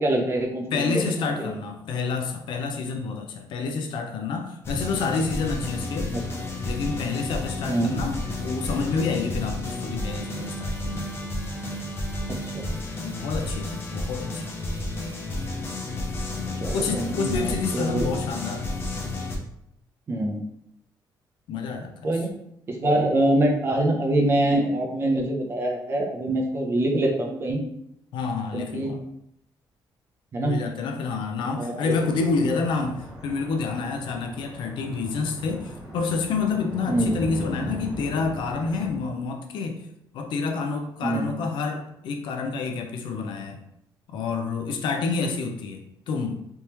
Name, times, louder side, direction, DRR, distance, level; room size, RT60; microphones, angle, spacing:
voice 1, 0.0-1.5 6.1-6.2 7.7-7.9 12.3-12.7 16.6-18.1 20.1-20.4 22.0-22.4 22.7-27.6 28.5-28.9 30.3-30.6 31.6-31.9 36.9-37.2 41.0-41.3, right 1 dB, 30° right, 2 dB, 0.5 m, -25 dB
voice 2, 0.7-6.2 6.6-11.1 13.0-14.6 16.7-18.7 21.5-22.1 28.1-29.0 30.4-39.8 40.1-43.6 44.1-46.4, left 4 dB, 80° left, 4 dB, 0.5 m, -28 dB
sound 1, 4.6-19.4, left 2 dB, 30° left, 0.6 m, -31 dB
sound 2, 31.9-38.9, equal, 10° right, 1.1 m, -39 dB
3.4 x 3.0 x 2.9 m, 0.77 s
cardioid pair, 175°, 8 cm